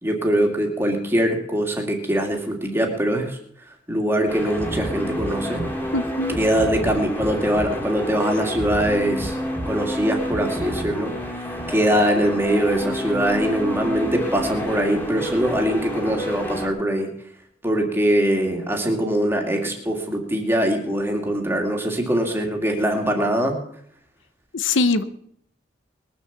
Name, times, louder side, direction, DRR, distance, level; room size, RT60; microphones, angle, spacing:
voice 1, 0.0-3.4 3.9-5.7 6.4-9.4 9.7-11.1 11.7-17.1 17.6-23.6, right 1 dB, 10° right, 2 dB, 2.3 m, -22 dB
sound 1, 4.3-16.7, equal, 10° left, 2.5 m, -29 dB
voice 2, 5.9-6.4 24.5-25.0, left 3 dB, 75° left, 12 dB, 0.9 m, -21 dB
20.5 x 7.2 x 7.3 m, 0.69 s
head